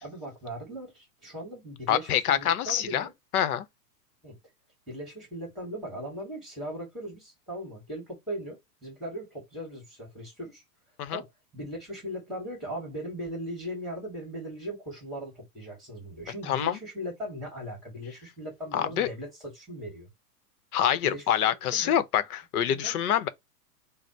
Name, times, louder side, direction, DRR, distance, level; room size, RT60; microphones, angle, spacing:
voice 1, 0.0-3.1 4.2-4.4 4.9-10.6 11.1-20.1 21.0-22.0 22.6-23.0, equal, ahead, 2.3 m, -39 dB
voice 2, 1.9-3.1 3.3-3.7 11.0-11.2 16.5-16.8 18.7-19.1 20.7-23.3, left 10 dB, 65° left, 0.8 m, -26 dB
3.9 x 2.1 x 4.4 m
hypercardioid pair, 150°, 48 cm